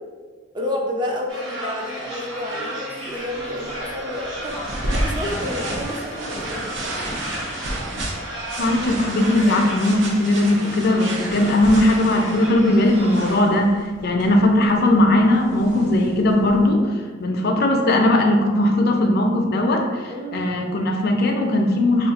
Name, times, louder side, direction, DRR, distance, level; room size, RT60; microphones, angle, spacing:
voice 1, 0.5-7.0 20.1-20.4, left 1 dB, 25° right, -1 dB, 0.4 m, -30 dB
sound 1, 1.3-13.4, right 1 dB, 85° right, 1.0 m, -34 dB
sound 2, 3.0-16.7, right 1 dB, 70° right, 0.6 m, -32 dB
voice 2, 8.6-13.7 14.0-16.9 17.2-20.0 20.3-22.1, left 1 dB, 55° left, 3 dB, 0.5 m, -18 dB
2.7 x 2.5 x 3.9 m, 1.5 s
head